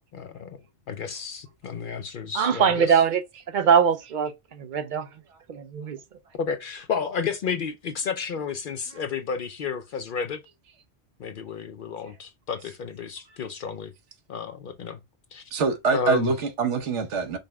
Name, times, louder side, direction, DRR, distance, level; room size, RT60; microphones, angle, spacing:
voice 1, 0.1-0.6 0.9-3.0 6.3-10.4 11.2-13.9 14.3-15.0 15.3-15.4 15.9-16.3, left 6 dB, 60° left, 0.6 m, -31 dB
voice 2, 2.3-5.2 5.5-6.0, right 7 dB, 55° right, 0.6 m, -22 dB
voice 3, 15.5-17.4, right 4 dB, 85° right, 1.2 m, -24 dB
5.2 x 2.1 x 4.7 m
omnidirectional pair, 1.2 m